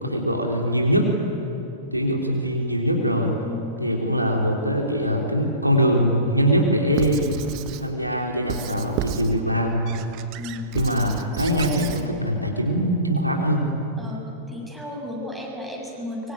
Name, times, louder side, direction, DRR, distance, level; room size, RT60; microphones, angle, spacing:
voice 1, 0.0-1.1 1.9-3.3 3.8-7.4 7.8-9.8 10.7-13.7, equal, 90° right, 0 dB, 3.3 m, -22 dB
voice 2, 3.4-3.8 4.0-4.3 10.4-10.6 14.0-14.2 14.5-16.3, left 1 dB, ahead, -2 dB, 7.5 m, -34 dB
Squeak / Writing, 6.9-7.9 8.5-9.4 9.9-12.1, right 10 dB, 40° right, 1.4 m, -32 dB
24.5 x 23.5 x 9.7 m, 2.9 s
figure-of-eight pair, 90°, 0 cm